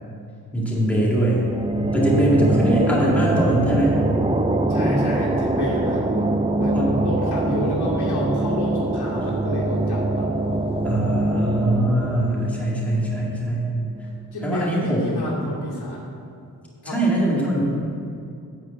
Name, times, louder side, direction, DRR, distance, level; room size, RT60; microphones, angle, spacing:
voice 1, 0.5-1.4 1.9-3.9 6.7-7.1 10.8-13.7 14.4-15.1 16.8-17.8, right 1 dB, 5° left, -5 dB, 1.9 m, -22 dB
sound 1, 1.1-14.5, right 2 dB, 15° right, 0.4 m, -24 dB
voice 2, 4.7-6.3 6.6-10.3 14.3-16.0 16.8-17.0, left 1 dB, 85° left, -4 dB, 2.5 m, -29 dB
sound 2, 5.0-11.5, equal, 35° right, 1.9 m, -36 dB
10.0 x 4.9 x 7.7 m, 2.5 s
wide cardioid pair, 130°, 38 cm